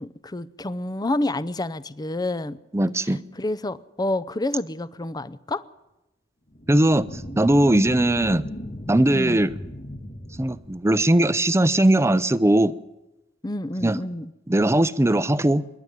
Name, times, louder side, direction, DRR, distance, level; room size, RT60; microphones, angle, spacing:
voice 1, 0.0-2.6 3.1-5.6 9.1-9.4 13.4-14.3, left 1 dB, 20° left, 0.6 m, -29 dB
voice 2, 2.7-3.2 6.7-7.1 7.4-8.4 8.9-9.5 10.4-12.7 13.8-14.0 14.5-15.6, right 1 dB, 15° right, 0.6 m, -19 dB
sound 1, 6.5-11.5, equal, 55° left, 2.8 m, -36 dB
27.0 x 11.5 x 9.3 m
head